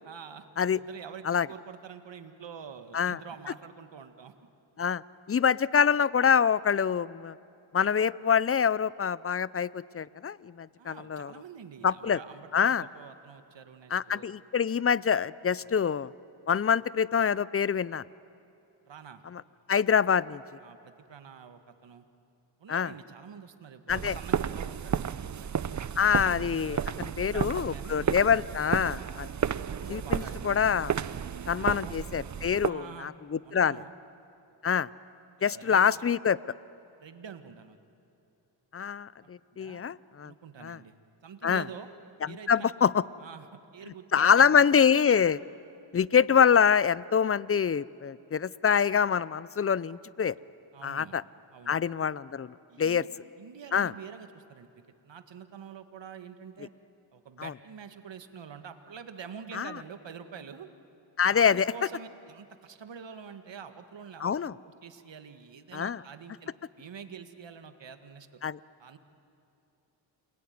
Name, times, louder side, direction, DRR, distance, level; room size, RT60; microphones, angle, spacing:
voice 1, 0.1-0.5 0.8-4.3 10.8-14.3 15.6-15.7 18.9-19.2 20.6-22.0 22.6-26.1 26.6-28.2 29.6-30.5 31.5-32.0 32.6-33.1 33.4-33.9 35.4-35.8 37.0-37.8 39.2-39.3 39.6-39.9 40.2-40.9 41.2-41.9 42.3-42.9 43.2-44.6 50.7-51.1 51.5-51.8 52.7-53.1 53.4-54.7 55.0-56.7 57.1-60.7 61.3-66.5 66.8-68.4 68.8-69.0, right 7 dB, 65° right, 9 dB, 1.9 m, -46 dB
voice 2, 5.3-7.4 7.7-11.3 11.8-12.2 12.5-12.8 13.9-16.1 16.5-18.0 19.3-19.4 19.7-20.4 22.7-22.9 23.9-24.2 26.0-29.3 29.9-30.9 31.5-33.8 34.6-34.9 35.4-36.4 38.7-40.3 40.6-40.8 41.4-41.6 42.2-43.0 44.1-45.4 45.9-50.3 50.8-51.2 51.7-53.0 53.7-53.9 57.4-57.5 59.5-59.7 61.2-61.7 64.2-64.5 65.7-66.0 68.4-68.6, left 7 dB, 30° left, 20 dB, 0.6 m, -25 dB
sound 1, 23.9-32.7, right 8 dB, 40° right, 0.6 m, -32 dB
29.0 x 21.0 x 9.5 m, 2.7 s
cardioid pair, 65°, 47 cm